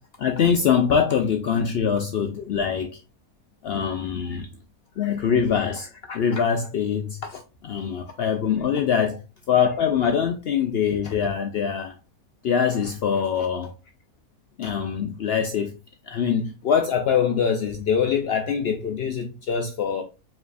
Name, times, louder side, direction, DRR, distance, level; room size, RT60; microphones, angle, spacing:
voice 1, 0.2-3.0 3.6-4.5 5.0-9.2 9.5-11.9 12.4-13.7 14.6-15.7 16.1-20.0, left 7 dB, 80° left, 0.5 m, -23 dB
4.9 x 3.2 x 2.3 m
omnidirectional pair, 1.6 m